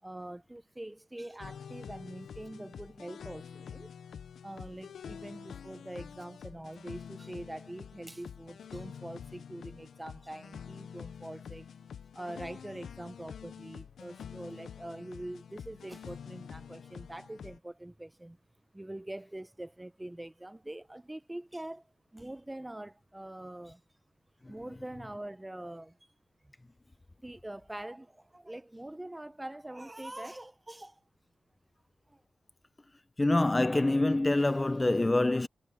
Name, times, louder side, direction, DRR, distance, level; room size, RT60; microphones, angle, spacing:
voice 1, 0.0-3.9 4.4-11.7 12.1-18.4 18.7-23.8 24.5-26.0 26.4-26.5 27.2-31.0 32.1-32.2, right 1 dB, 10° right, 0.8 m, -44 dB
sound 1, 1.4-17.6, left 7 dB, 85° left, 0.7 m, -47 dB
voice 2, 33.2-35.5, left 2 dB, 20° left, 0.6 m, -26 dB
wide cardioid pair, 95°, 0 cm